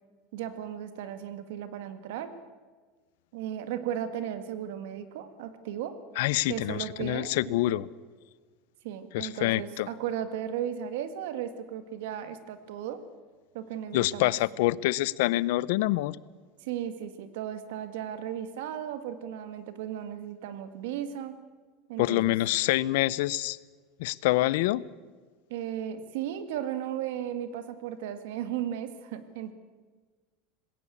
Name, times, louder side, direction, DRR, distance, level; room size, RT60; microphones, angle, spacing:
voice 1, 0.3-2.3 3.3-6.0 6.5-7.3 7.7-7.8 8.8-13.0 13.5-14.4 16.6-21.3 21.9-22.4 25.5-29.5, right 10 dB, 75° right, 10 dB, 1.9 m, -35 dB
voice 2, 6.2-7.9 9.1-9.9 13.9-16.2 22.0-23.6 24.0-24.8, left 17 dB, 70° left, 21 dB, 0.6 m, -26 dB
20.0 x 17.0 x 8.4 m, 1.4 s
supercardioid pair, 170°, 0 cm